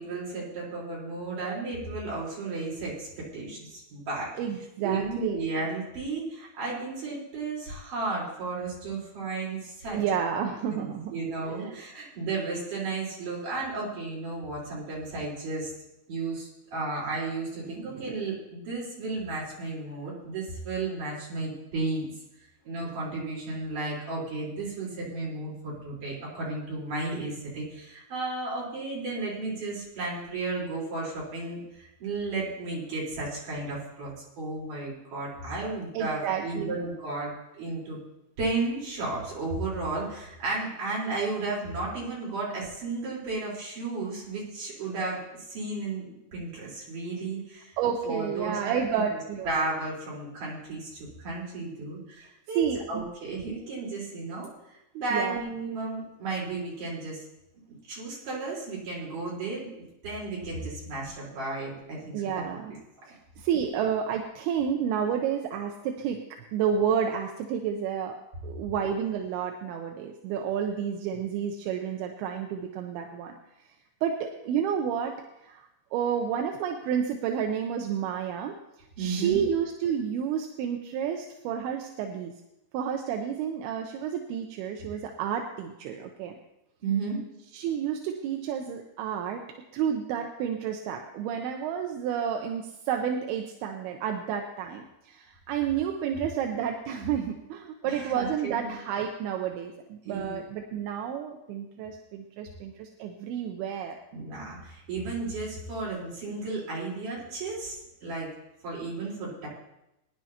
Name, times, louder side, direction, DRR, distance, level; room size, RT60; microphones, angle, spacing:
voice 1, 0.0-4.3 4.8-10.0 10.7-15.7 16.1-22.1 22.6-34.1 34.4-38.0 38.4-45.2 45.5-47.7 48.1-49.0 49.4-52.6 52.9-54.5 54.9-57.2 57.9-62.4 79.0-79.4 86.8-87.2 97.8-98.7 100.1-100.3 104.1-108.3 108.6-109.5, right 3 dB, 55° right, -5 dB, 5.7 m, -33 dB
voice 2, 4.4-5.4 9.9-11.1 11.4-11.8 17.8-18.2 35.9-36.8 47.8-49.5 52.6-53.1 55.1-55.4 62.1-62.7 63.1-66.2 66.5-73.3 74.0-75.2 75.4-78.6 79.0-82.3 82.7-86.4 87.5-89.4 89.7-104.0, right 8 dB, 85° right, 3 dB, 2.7 m, -30 dB
22.0 x 10.5 x 2.9 m, 0.89 s
omnidirectional pair, 4.5 m